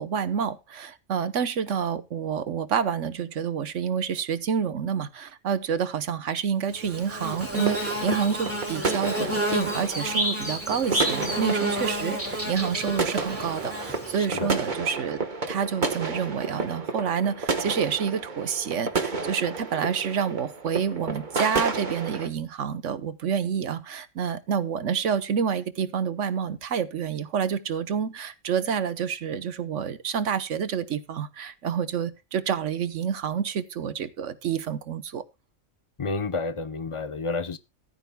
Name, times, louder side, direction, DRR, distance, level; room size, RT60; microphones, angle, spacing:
voice 1, 0.0-15.2 15.5-35.2, right 7 dB, 60° right, 1.2 m, -28 dB
Bird / Buzz, 6.7-14.4, right 1 dB, 10° right, 3.2 m, -30 dB
sound 1, 7.2-22.3, right 4 dB, 35° right, 1.3 m, -32 dB
voice 2, 36.0-37.6, left 3 dB, 30° left, 0.6 m, -30 dB
15.5 x 13.0 x 2.2 m
omnidirectional pair, 1.4 m